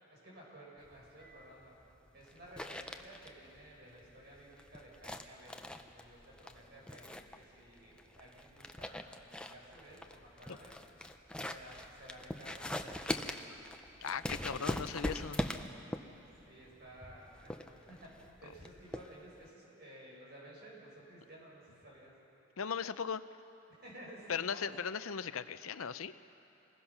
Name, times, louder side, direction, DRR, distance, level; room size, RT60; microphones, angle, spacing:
voice 1, 0.1-1.7 2.1-10.8 11.5-13.3 16.5-17.3 17.6-22.1 23.8-24.9, right 1 dB, 50° right, -4 dB, 6.9 m, -54 dB
sound 1, 0.8-19.5, left 1 dB, 5° left, 0.6 m, -42 dB
voice 2, 14.0-15.4 22.6-23.2 24.3-26.1, left 6 dB, 85° left, 12 dB, 0.6 m, -38 dB
28.0 x 21.0 x 5.9 m, 3.0 s
head